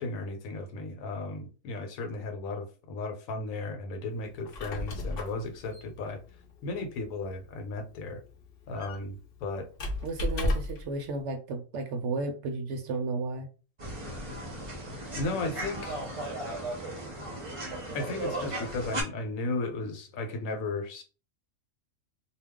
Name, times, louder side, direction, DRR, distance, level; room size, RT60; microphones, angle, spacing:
voice 1, 0.0-6.2 6.6-8.2 8.7-9.7 15.2-16.0 17.9-21.0, left 3 dB, 80° left, 1.1 m, -35 dB
Squeak, 4.3-10.9, left 1 dB, 55° left, 0.7 m, -35 dB
voice 2, 10.0-13.5, right 3 dB, 65° right, 0.8 m, -33 dB
sound 1, 13.8-19.0, right 1 dB, 30° right, 0.6 m, -36 dB
2.3 x 2.3 x 3.5 m
omnidirectional pair, 1.4 m